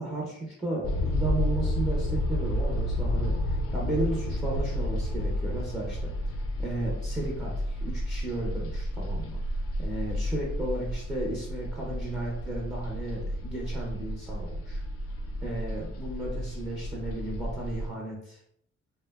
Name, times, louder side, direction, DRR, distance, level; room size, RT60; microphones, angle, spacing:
voice 1, 0.0-6.1 6.6-9.4 9.8-14.8 15.4-18.4, right 2 dB, 5° right, -4 dB, 0.6 m, -34 dB
sound 1, 0.8-17.9, left 1 dB, 50° left, 0.5 m, -31 dB
2.6 x 2.1 x 2.2 m, 0.68 s
cardioid pair, 90°, 30 cm